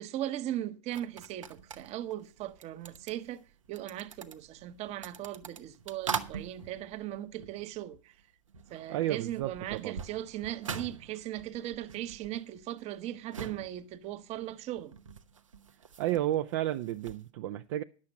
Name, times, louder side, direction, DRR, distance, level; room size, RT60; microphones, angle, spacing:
voice 1, 0.0-3.4 3.7-8.1 8.7-14.9, right 13 dB, 45° right, 0.9 m, -38 dB
sound 1, 0.9-8.2 8.5-17.3, right 6 dB, 85° right, 0.9 m, -44 dB
voice 2, 8.9-10.0 16.0-17.8, right 13 dB, 60° right, 0.5 m, -32 dB
10.5 x 7.5 x 6.4 m
figure-of-eight pair, 85°, 16 cm